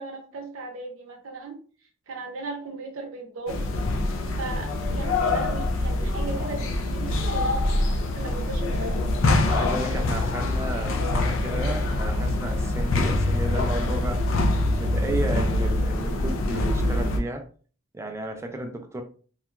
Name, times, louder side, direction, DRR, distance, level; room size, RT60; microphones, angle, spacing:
voice 1, 0.0-1.6 2.1-3.6 4.3-7.6 8.1-9.0 14.8-14.9, right 3 dB, 90° right, 1 dB, 0.6 m, -37 dB
sound 1, 3.5-17.2, left 2 dB, 65° left, 0.4 m, -24 dB
voice 2, 9.5-14.2 14.7-17.5 17.9-19.0, right 1 dB, 15° right, 3 dB, 0.3 m, -33 dB
2.8 x 2.3 x 2.3 m, 0.41 s
head